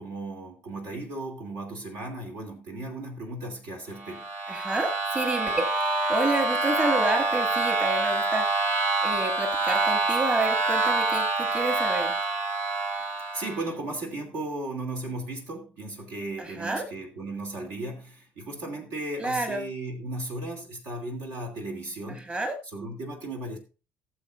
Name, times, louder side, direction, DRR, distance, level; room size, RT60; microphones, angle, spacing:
voice 1, 0.0-4.2 13.3-22.4 22.7-23.6, right 2 dB, 65° right, 2.9 m, -36 dB
sound 1, 4.0-13.7, right 3 dB, 50° right, 2.4 m, -26 dB
voice 2, 4.5-12.2 16.4-16.8 19.2-19.6 22.1-22.6, right 2 dB, 25° right, 2.2 m, -30 dB
17.5 x 7.4 x 2.5 m
figure-of-eight pair, 55°, 5 cm